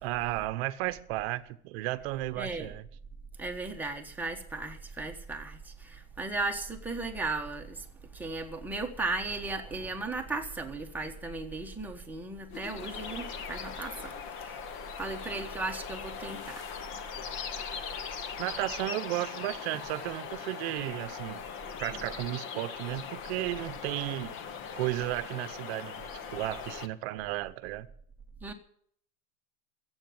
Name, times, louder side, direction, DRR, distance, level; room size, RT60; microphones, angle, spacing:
voice 1, 0.0-2.9 18.3-21.5 21.8-24.4 24.7-27.9, right 17 dB, 45° right, 1.0 m, -34 dB
voice 2, 2.4-2.7 3.4-7.8 8.1-14.6 15.0-16.6 28.4-28.5, right 3 dB, 5° right, 1.3 m, -36 dB
sound 1, 12.5-26.9, left 7 dB, 30° left, 0.9 m, -40 dB
15.5 x 8.2 x 9.5 m
supercardioid pair, 150°, 43 cm